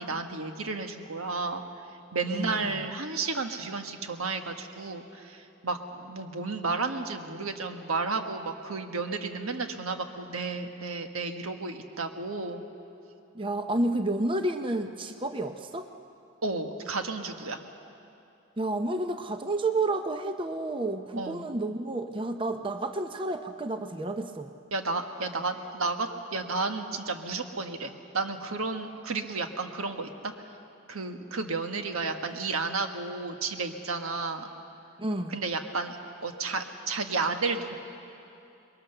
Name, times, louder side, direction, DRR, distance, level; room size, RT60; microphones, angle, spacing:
voice 1, 0.0-1.6 2.1-12.6 16.4-17.6 21.1-21.5 24.7-30.3 30.9-34.5 35.3-36.0 36.2-37.8, right 3 dB, 90° right, 5 dB, 1.5 m, -32 dB
voice 2, 2.3-2.7 13.3-15.9 18.6-24.5 35.0-35.4, right 2 dB, 25° right, 7 dB, 0.7 m, -30 dB
24.5 x 22.0 x 6.8 m, 2.7 s
head